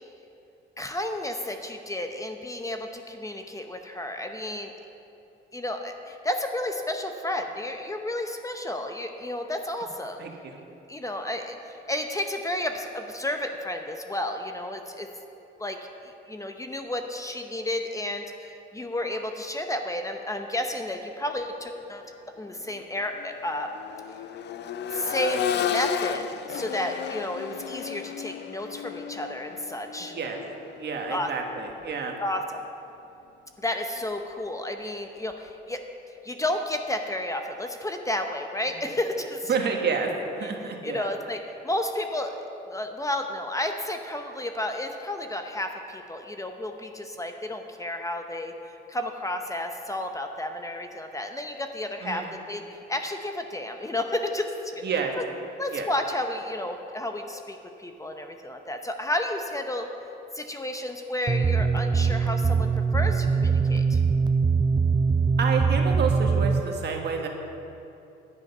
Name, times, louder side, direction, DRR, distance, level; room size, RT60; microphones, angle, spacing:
voice 1, 0.8-4.7 5.5-10.2 10.9-15.1 15.6-22.0 22.4-23.7 24.9-30.1 31.1-31.3 32.2-32.6 33.6-35.8 36.2-39.5 40.8-42.3 42.7-48.5 48.9-54.8 55.2-55.3 55.6-59.9 60.3-64.0, left 1 dB, 15° left, 5 dB, 0.8 m, -32 dB
voice 2, 10.2-10.6 30.0-30.4 30.8-32.2 39.5-41.1 52.0-52.3 54.8-55.1 55.7-55.9 65.4-67.3, right 5 dB, 60° right, 2 dB, 1.5 m, -29 dB
Accelerating revving vroom, 21.8-22.0 22.4-32.3 34.0-34.1, left 8 dB, 60° left, 0.5 m, -34 dB
sound 1, 61.3-66.6, right 5 dB, 20° right, 0.5 m, -22 dB
10.5 x 9.3 x 5.5 m, 2.8 s
cardioid pair, 90°, 20 cm